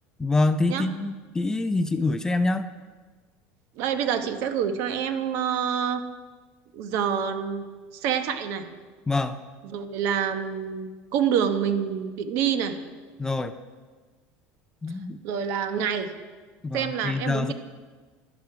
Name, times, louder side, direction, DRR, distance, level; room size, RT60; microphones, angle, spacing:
voice 1, 0.2-2.6 9.1-9.4 13.2-13.5 14.8-15.2 16.6-17.5, left 2 dB, 10° left, 10 dB, 0.4 m, -25 dB
voice 2, 3.8-6.0 6.7-7.6 7.9-8.6 9.6-12.8 15.2-16.1 16.7-17.5, right 8 dB, 60° right, 9 dB, 1.0 m, -27 dB
11.5 x 10.5 x 4.8 m, 1.4 s
cardioid pair, 145°, 5 cm